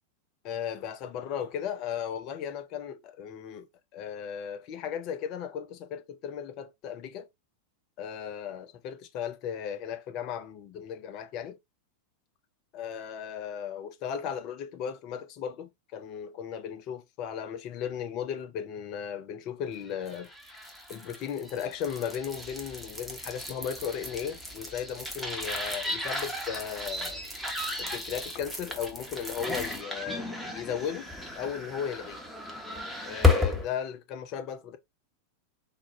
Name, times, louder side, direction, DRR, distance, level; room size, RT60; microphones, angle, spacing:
voice 1, 0.4-7.3 8.0-11.6 12.7-20.3 20.9-27.2 27.8-32.2 33.0-34.8, left 8 dB, 40° left, 0.6 m, -36 dB
sound 1, 20.0-33.7, left 3 dB, ahead, 1.1 m, -33 dB
4.0 x 2.3 x 3.1 m
figure-of-eight pair, 90°, 0 cm